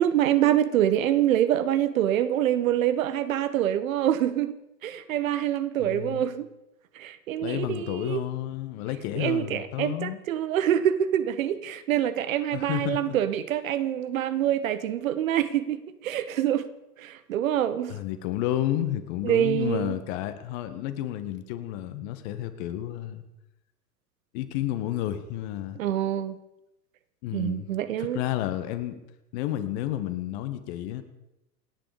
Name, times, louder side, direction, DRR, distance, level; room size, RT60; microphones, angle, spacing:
voice 1, 0.0-6.5 6.9-8.2 9.1-16.7 17.0-18.0 19.2-20.0 25.7-26.4 27.3-28.2, right 11 dB, 55° right, 1.3 m, -25 dB
voice 2, 5.8-6.3 7.4-10.2 12.5-13.2 17.9-23.2 24.3-25.8 27.2-27.7 28.0-29.0 29.3-31.0, left 13 dB, 45° left, 1.9 m, -31 dB
28.0 x 10.0 x 5.2 m
figure-of-eight pair, 95°, 47 cm